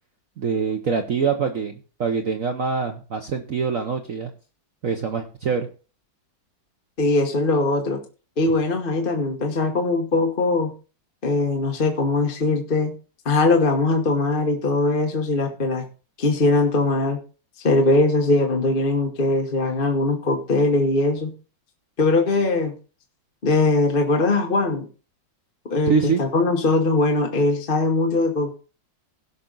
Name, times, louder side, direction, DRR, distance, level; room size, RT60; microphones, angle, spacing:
voice 1, 0.4-4.3 4.8-5.7 25.9-26.2, right 5 dB, 50° right, 5 dB, 1.3 m, -24 dB
voice 2, 7.0-8.0 8.4-10.7 11.2-12.9 13.2-15.8 16.2-17.2 17.6-21.3 22.0-22.7 23.4-24.9 25.7-25.9 26.2-28.6, left 2 dB, 30° left, 3 dB, 1.3 m, -21 dB
17.5 x 5.9 x 3.9 m, 0.35 s
omnidirectional pair, 2.0 m